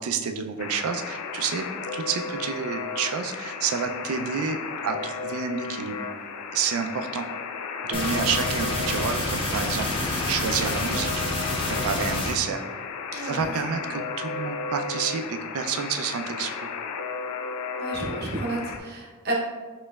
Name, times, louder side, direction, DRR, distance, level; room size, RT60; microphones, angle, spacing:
voice 1, 0.0-1.7 1.9-6.0 6.5-7.3 7.8-11.1 11.6-12.6 13.2-16.7, right 6 dB, 75° right, 6 dB, 0.3 m, -29 dB
Alarm, 0.6-18.8, left 5 dB, 90° left, 0.3 m, -34 dB
sound 1, 7.9-12.3, left 2 dB, 25° left, 0.5 m, -28 dB
voice 2, 13.1-13.5 17.8-19.3, right 1 dB, 45° right, -2 dB, 0.7 m, -31 dB
4.2 x 3.1 x 2.3 m, 1.4 s
head